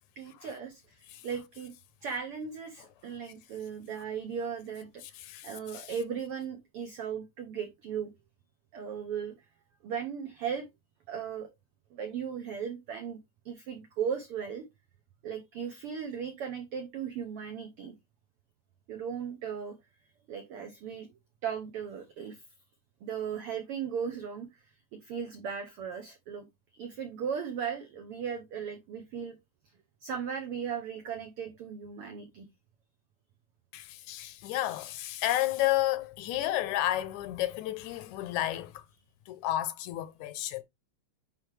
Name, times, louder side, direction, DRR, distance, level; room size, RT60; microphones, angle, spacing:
voice 1, 0.2-1.7 2.0-8.1 8.7-9.5 9.8-10.7 11.1-11.5 11.9-13.2 13.4-14.6 15.2-17.9 18.9-19.8 20.3-21.1 21.4-22.4 23.0-24.7 24.9-26.5 26.8-29.4 30.0-32.5, right 7 dB, 80° right, 1.2 m, -37 dB
voice 2, 33.7-38.8 39.3-40.6, left 14 dB, 80° left, 2.0 m, -31 dB
9.5 x 3.3 x 3.2 m
omnidirectional pair, 3.5 m